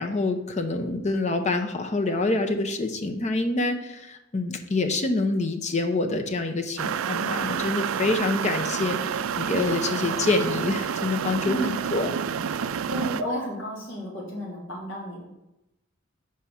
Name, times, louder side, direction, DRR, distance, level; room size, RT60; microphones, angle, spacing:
voice 1, 0.0-12.1, left 2 dB, 35° left, 6 dB, 0.7 m, -26 dB
Water boiler, 6.8-13.2, right 7 dB, 85° right, 0.4 m, -29 dB
voice 2, 11.4-11.8 12.9-15.2, equal, 70° left, -3 dB, 2.6 m, -32 dB
5.7 x 4.9 x 5.6 m, 0.91 s
head